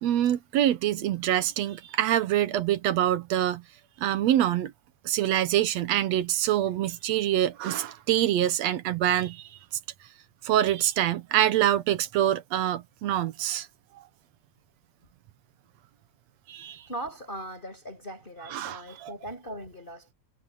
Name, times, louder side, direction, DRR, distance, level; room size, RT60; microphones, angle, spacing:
voice 1, 0.0-3.6 4.0-4.7 5.0-9.5 10.4-13.7 16.5-16.9 18.5-19.1, right 12 dB, 70° right, 1.9 m, -25 dB
voice 2, 16.9-20.1, right 1 dB, 15° left, 5.8 m, -39 dB
omnidirectional pair, 3.5 m